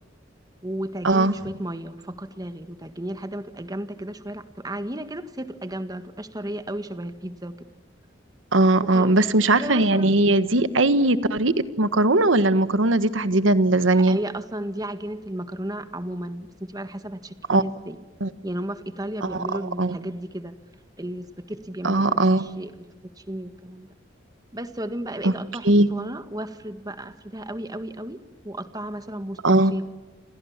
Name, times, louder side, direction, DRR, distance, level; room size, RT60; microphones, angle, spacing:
voice 1, 0.6-7.7 8.9-9.2 9.5-10.1 14.0-18.0 18.4-20.6 21.0-23.9 24.5-29.8, right 1 dB, 20° right, 9 dB, 1.7 m, -34 dB
voice 2, 8.5-14.2 17.5-17.6 18.2-18.3 19.2-19.4 19.8-20.0 21.8-22.4 25.2-25.3 25.6-25.9 29.4-29.7, right 2 dB, 80° right, 12 dB, 1.4 m, -19 dB
29.0 x 27.0 x 7.4 m, 1.2 s
head